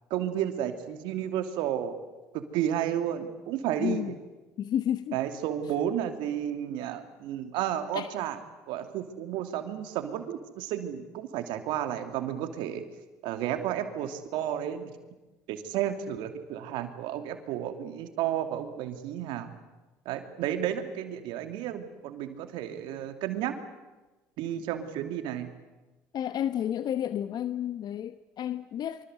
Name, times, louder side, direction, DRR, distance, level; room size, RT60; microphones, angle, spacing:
voice 1, 0.1-1.9 2.3-4.2 5.1-8.4 8.7-12.8 13.2-14.9 15.5-19.5 20.1-23.6 24.4-25.5, right 10 dB, 70° right, 7 dB, 2.8 m, -32 dB
voice 2, 3.8-4.1 4.6-5.2 7.9-8.1 26.1-29.0, left 10 dB, 55° left, 13 dB, 1.0 m, -31 dB
25.5 x 25.0 x 8.1 m, 1.1 s
hypercardioid pair, 65°, 8 cm